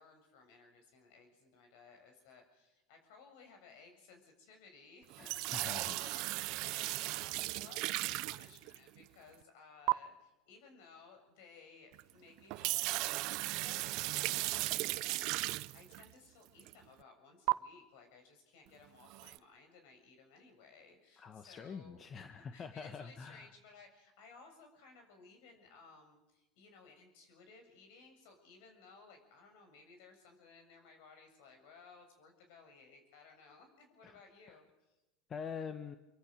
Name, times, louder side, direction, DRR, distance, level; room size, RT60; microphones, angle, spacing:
voice 1, 0.0-5.3 5.6-13.1 13.5-35.0, left 4 dB, 70° left, 5 dB, 7.1 m, -59 dB
sound 1, 5.1-9.0 9.9-10.0 11.9-12.0 12.4-16.0 16.6-16.7 17.5-17.6 19.1-19.4, right 21 dB, 60° right, 0.8 m, -36 dB
voice 2, 5.2-6.0 21.2-23.5 34.0-34.2 34.5-34.6 35.3-36.0, left 6 dB, 35° left, 9 dB, 1.5 m, -45 dB
25.5 x 24.0 x 6.7 m, 0.98 s
hypercardioid pair, 90°, 0 cm